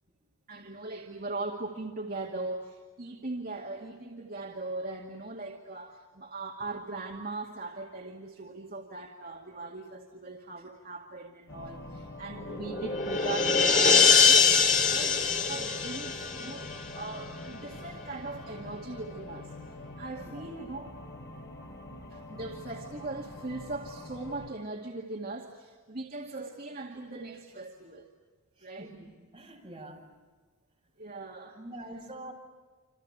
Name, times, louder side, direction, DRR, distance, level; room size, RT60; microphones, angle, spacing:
voice 1, 0.5-19.6 20.0-21.0 22.1-28.1 28.6-28.9 31.0-31.6, right 2 dB, 45° right, -1 dB, 2.2 m, -40 dB
sound 1, 11.5-24.5, left 2 dB, 55° left, 3.6 m, -45 dB
sound 2, 12.4-17.0, left 5 dB, 35° left, 2.1 m, -23 dB
voice 2, 28.6-30.1 31.6-32.3, right 1 dB, 25° right, -1 dB, 6.6 m, -45 dB
28.5 x 28.0 x 6.9 m, 1.5 s
head